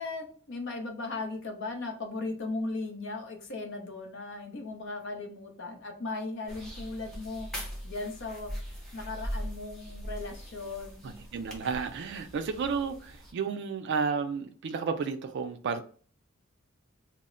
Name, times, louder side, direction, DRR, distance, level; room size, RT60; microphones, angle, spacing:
voice 1, 0.0-7.5 7.8-8.5 8.9-11.2, left 3 dB, 60° left, 0.6 m, -37 dB
sound 1, 6.5-13.3, equal, 5° left, 0.6 m, -41 dB
voice 2, 11.3-15.9, right 5 dB, 55° right, 0.3 m, -32 dB
2.1 x 2.0 x 3.6 m
head